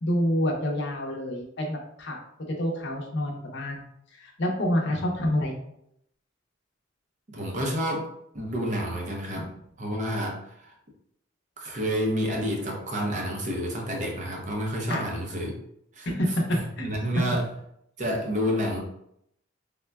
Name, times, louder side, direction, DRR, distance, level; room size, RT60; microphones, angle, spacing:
voice 1, 0.0-2.2 2.6-3.8 4.2-5.6 9.3-9.4 14.9-15.0 16.0-16.3 16.8-16.9, equal, 60° left, 0 dB, 0.6 m, -28 dB
voice 2, 7.3-8.1 8.3-9.5 9.8-10.7 11.6-15.5 15.9-16.1 16.5-17.5 18.0-18.8, equal, 40° right, 0 dB, 0.6 m, -29 dB
3.6 x 2.1 x 2.2 m, 0.74 s
head